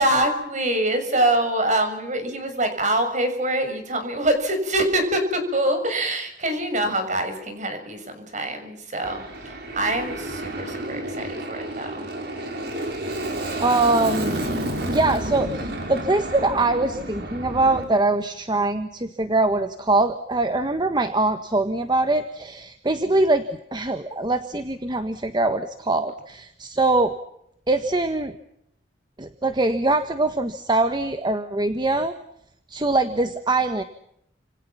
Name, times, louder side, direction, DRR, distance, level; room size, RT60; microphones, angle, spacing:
voice 1, 0.0-12.1, right 1 dB, 45° right, 7 dB, 6.6 m, -24 dB
Aircraft, 9.0-17.8, right 1 dB, 65° right, 5.7 m, -30 dB
voice 2, 13.6-14.4 14.9-23.4 23.7-27.2 27.7-28.3 29.2-32.2 32.7-33.8, right 2 dB, 25° right, 8 dB, 1.5 m, -23 dB
30.0 x 27.5 x 5.9 m, 0.76 s
head